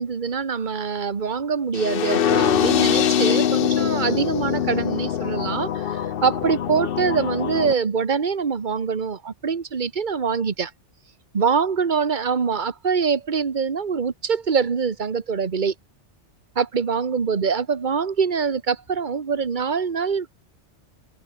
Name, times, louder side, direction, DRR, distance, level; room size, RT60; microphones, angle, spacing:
voice 1, 0.0-10.7 11.3-15.7 16.5-20.4, right 6 dB, 40° right, 1.4 m, -24 dB
sound 1, 1.7-7.7, left 9 dB, 55° left, 0.9 m, -23 dB
omnidirectional pair, 1.2 m